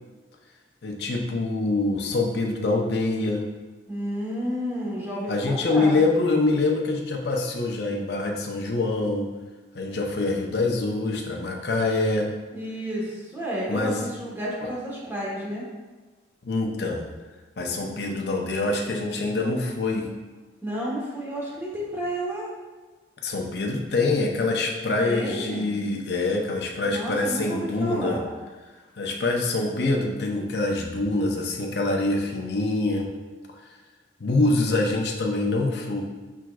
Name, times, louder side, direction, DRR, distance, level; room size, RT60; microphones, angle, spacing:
voice 1, 0.8-3.5 5.3-9.3 9.7-12.3 13.7-14.1 16.4-17.1 17.6-20.1 23.2-28.2 29.0-33.1 34.2-36.0, left 2 dB, 60° left, 1 dB, 0.6 m, -25 dB
voice 2, 3.9-6.0 12.5-15.6 20.6-22.5 25.0-25.7 26.8-28.2, equal, 10° right, -6 dB, 1.1 m, -31 dB
6.0 x 3.6 x 2.3 m, 1.3 s
head